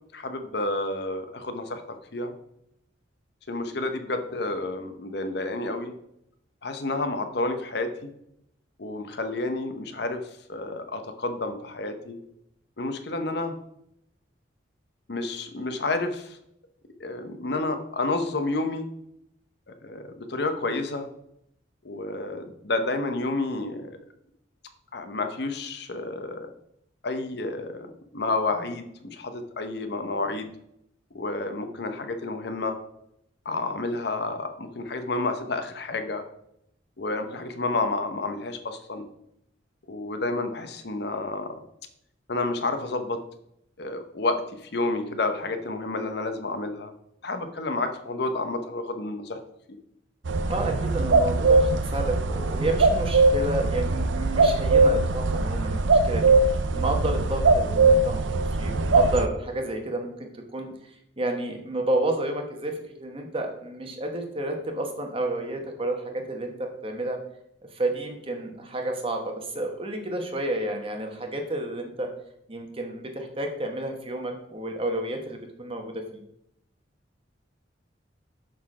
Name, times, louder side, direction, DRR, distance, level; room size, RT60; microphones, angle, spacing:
voice 1, 0.1-1.8 2.1-2.3 3.5-5.9 6.6-8.1 8.8-10.2 10.5-12.2 12.8-13.5 15.1-16.4 17.0-18.9 19.8-21.1 21.8-24.0 24.9-26.5 27.0-30.5 31.1-32.8 33.4-36.2 37.0-39.1 39.9-41.6 42.3-43.2 43.8-46.9 47.2-49.4, left 2 dB, 60° left, 7 dB, 0.8 m, -30 dB
sound 1, 50.2-59.3, right 3 dB, 80° right, 0.6 m, -21 dB
voice 2, 50.5-56.3 56.7-58.3 58.6-60.7 61.2-67.2 67.7-72.1 72.5-76.2, right 1 dB, 30° right, 4 dB, 1.1 m, -30 dB
6.6 x 5.9 x 4.8 m, 0.76 s
head